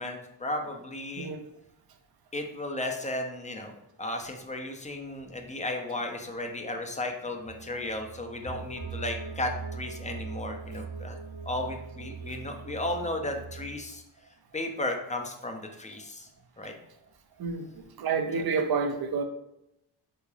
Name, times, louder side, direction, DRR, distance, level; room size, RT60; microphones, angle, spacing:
voice 1, 0.0-1.3 2.3-11.2 11.4-14.0 14.5-16.3 16.6-16.7 18.3-18.4, left 1 dB, 20° left, 3 dB, 0.4 m, -34 dB
sound 1, 7.4-13.8, right 5 dB, 90° right, 0.7 m, -40 dB
voice 2, 18.0-19.2, right 5 dB, 60° right, 6 dB, 0.5 m, -28 dB
3.6 x 3.1 x 2.3 m, 0.85 s
cardioid pair, 85°, 43 cm